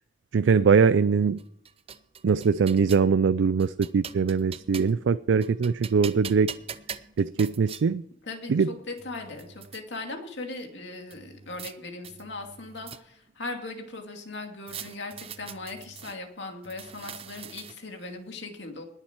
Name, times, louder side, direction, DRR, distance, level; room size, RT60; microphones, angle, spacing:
voice 1, 0.3-1.4 2.2-6.5 7.2-8.0 8.5-8.7, right 5 dB, 80° right, 14 dB, 0.4 m, -22 dB
sound 1, 1.4-3.1 3.6-5.1 5.4-7.8 8.6-8.7 9.0-9.8 11.1-11.7 12.0-13.3 14.7-16.2 16.6-18.0, right 7 dB, 30° right, 0.6 m, -42 dB
voice 2, 8.2-18.8, left 2 dB, 70° left, 3 dB, 2.5 m, -39 dB
20.0 x 7.3 x 4.7 m, 0.71 s
head